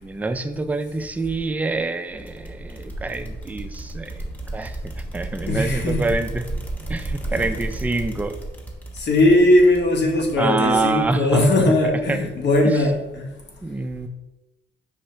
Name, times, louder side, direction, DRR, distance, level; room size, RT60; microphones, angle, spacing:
voice 1, 0.0-4.2 4.5-6.5 6.9-8.4 10.1-11.7 12.1-12.2 12.6-12.8 13.6-14.1, right 3 dB, 10° right, 7 dB, 0.3 m, -26 dB
sound 1, 2.2-11.4, right 2 dB, 10° left, 0.9 m, -33 dB
voice 2, 5.5-6.2 7.3-7.5 9.0-13.3, left 1 dB, 60° left, 0 dB, 1.2 m, -19 dB
5.4 x 2.8 x 3.2 m, 0.99 s
cardioid pair, 90°, 20 cm